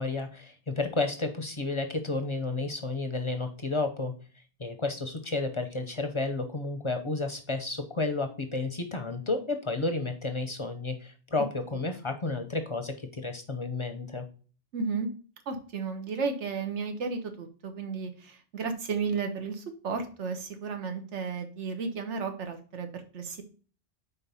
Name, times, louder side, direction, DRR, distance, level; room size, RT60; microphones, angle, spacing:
voice 1, 0.0-4.1 4.6-14.3, left 3 dB, 35° left, 6 dB, 0.6 m, -31 dB
voice 2, 14.7-15.1 15.5-23.4, right 5 dB, 80° right, 6 dB, 1.3 m, -33 dB
4.5 x 4.3 x 5.4 m, 0.39 s
omnidirectional pair, 1.2 m